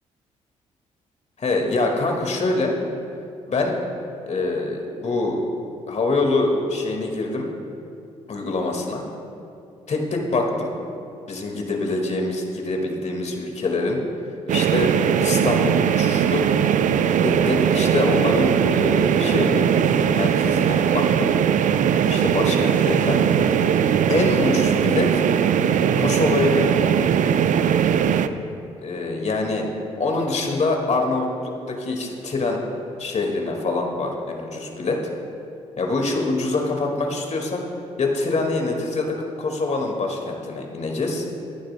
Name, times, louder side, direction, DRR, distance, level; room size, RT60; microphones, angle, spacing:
voice 1, 1.4-2.7 3.5-3.8 4.3-5.4 5.9-7.5 8.3-9.1 9.9-10.7 11.3-14.0 14.5-14.9 15.2-16.5 17.2-19.7 20.1-21.3 22.0-23.2 24.1-25.3 26.0-27.0 28.8-29.7 30.0-32.6 33.0-35.0 35.8-37.6 38.0-41.3, left 3 dB, 45° left, 1 dB, 1.8 m, -24 dB
sound 1, 14.5-28.3, right 8 dB, 50° right, 0.5 m, -19 dB
16.0 x 11.5 x 2.2 m, 2.6 s
hypercardioid pair, 45°, 16 cm